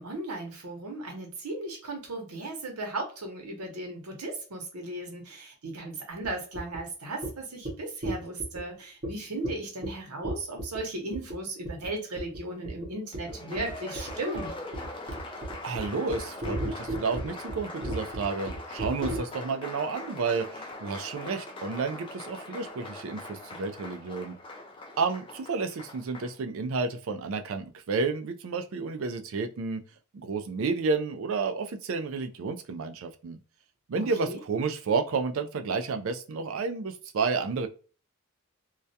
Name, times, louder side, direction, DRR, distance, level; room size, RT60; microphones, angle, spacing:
voice 1, 0.0-14.6 34.2-34.4, right 2 dB, 90° right, 2 dB, 0.9 m, -36 dB
sound 1, 6.2-6.3 6.6-6.8 7.2-7.3 7.6-7.7 8.0-8.6 9.0-9.1 9.4-9.5 9.8-9.9 10.2-10.8 11.1-11.4 11.7-11.9 12.2-12.4 12.7-12.9 13.1-19.2, right 1 dB, 40° right, 0.7 m, -33 dB
Applause, 13.1-26.4, left 2 dB, 25° left, 0.3 m, -42 dB
voice 2, 15.6-24.4 25.0-29.8 30.1-33.4 33.9-37.7, right 4 dB, 65° right, 7 dB, 0.4 m, -31 dB
2.3 x 2.1 x 2.7 m, 0.37 s
head